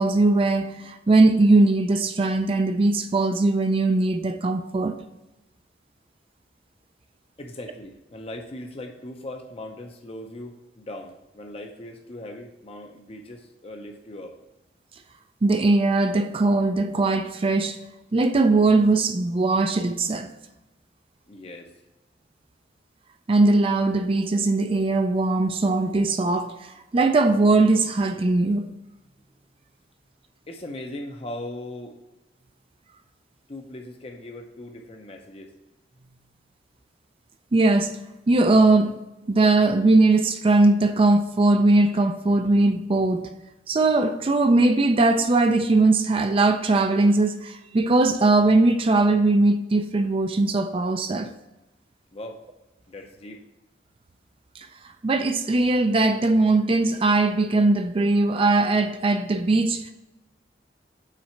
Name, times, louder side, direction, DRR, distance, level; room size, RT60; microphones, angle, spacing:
voice 1, 0.0-5.0 15.4-17.8 18.1-20.3 23.3-28.7 37.5-37.9 38.3-38.9 39.3-43.3 43.7-51.3 54.6-54.7 55.0-59.9, right 2 dB, 30° right, 0.4 m, -20 dB
voice 2, 7.4-14.4 21.3-21.7 30.5-32.0 33.5-35.5 52.1-52.4 52.9-53.4, left 1 dB, 35° left, 0.6 m, -39 dB
5.8 x 4.2 x 5.7 m
head